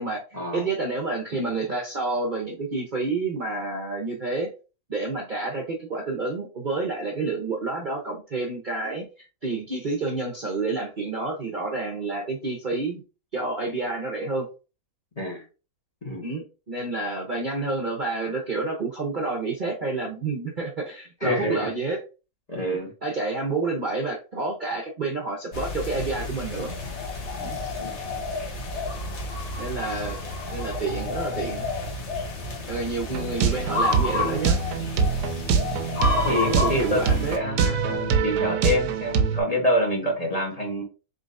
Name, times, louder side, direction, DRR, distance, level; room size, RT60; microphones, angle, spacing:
voice 1, 0.0-4.5 4.9-13.0 13.3-14.5 16.2-22.0 22.7-26.8 27.4-27.6 29.6-30.2 30.5-31.6 32.7-34.6 36.4-37.4, right 3 dB, 40° right, -1 dB, 0.7 m, -29 dB
voice 2, 21.2-21.7 22.5-22.9 27.8-27.9 35.7-35.8 36.2-40.8, left 1 dB, 30° left, -2 dB, 1.0 m, -27 dB
sound 1, 25.5-37.4, left 3 dB, 50° left, 1.2 m, -30 dB
sound 2, 33.1-39.4, right 6 dB, 85° right, 1.2 m, -24 dB
3.9 x 3.8 x 2.6 m, 0.32 s
omnidirectional pair, 1.7 m